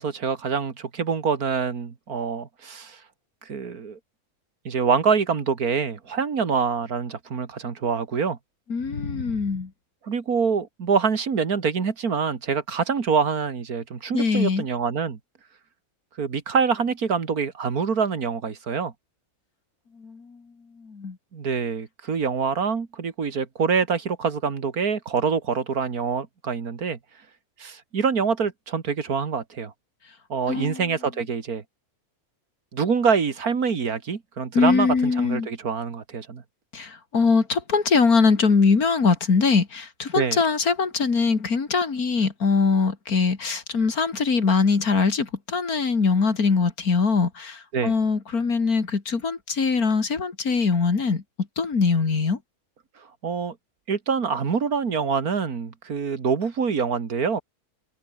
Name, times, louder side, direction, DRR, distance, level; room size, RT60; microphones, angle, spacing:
voice 1, 0.0-3.0 3.5-4.0 4.6-8.4 10.0-15.2 16.2-18.9 21.3-27.0 27.6-29.7 30.3-31.6 32.7-36.4 40.1-40.4 47.7-47.9 53.2-53.6 53.9-57.4, right 5 dB, 75° right, 2.4 m, -25 dB
voice 2, 8.7-9.7 14.1-14.6 20.0-20.4 20.8-21.2 30.5-30.8 34.5-35.5 36.7-51.2 51.6-52.4, left 4 dB, 75° left, 3.0 m, -22 dB
omnidirectional pair, 1.6 m